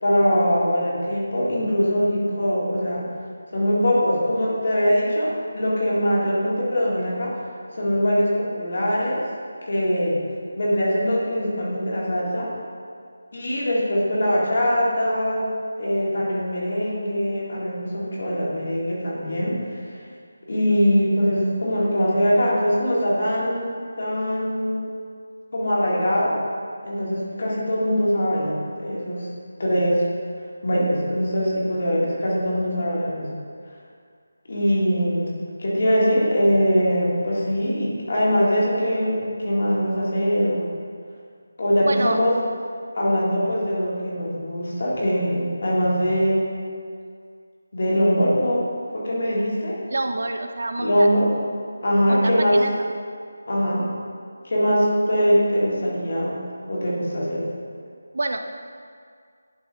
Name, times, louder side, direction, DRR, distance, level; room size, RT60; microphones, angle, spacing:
voice 1, 0.0-3.0 3.5-7.3 7.7-9.2 9.6-10.2 10.6-12.5 13.3-15.5 15.8-20.0 20.5-23.7 24.0-24.8 25.5-26.4 26.8-29.3 29.6-30.0 30.6-33.4 34.5-40.7 41.6-42.3 42.9-46.5 47.7-49.8 50.8-51.3 51.8-52.6 53.5-53.9 54.4-56.4 56.7-57.4, equal, 40° left, -6 dB, 2.0 m, -22 dB
voice 2, 41.8-42.2 49.9-51.1 52.1-52.9 58.1-58.4, right 2 dB, 50° right, 6 dB, 0.5 m, -27 dB
11.0 x 4.6 x 3.3 m, 2.1 s
figure-of-eight pair, 180°, 0 cm